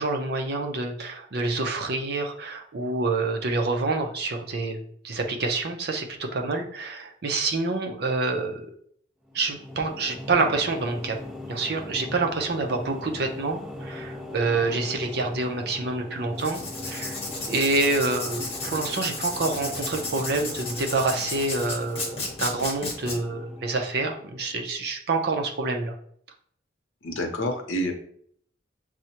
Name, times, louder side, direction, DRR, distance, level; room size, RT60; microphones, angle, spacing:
voice 1, 0.0-8.7 9.3-11.2 11.5-17.2 17.5-25.9, right 3 dB, 55° right, 4 dB, 0.5 m, -27 dB
sound 1, 9.2-24.6, left 1 dB, 5° right, 0.3 m, -40 dB
Writing, 16.3-23.2, left 2 dB, 30° left, 0.9 m, -33 dB
voice 2, 27.0-27.9, equal, 85° left, 4 dB, 0.7 m, -28 dB
6.1 x 2.1 x 2.8 m, 0.62 s
head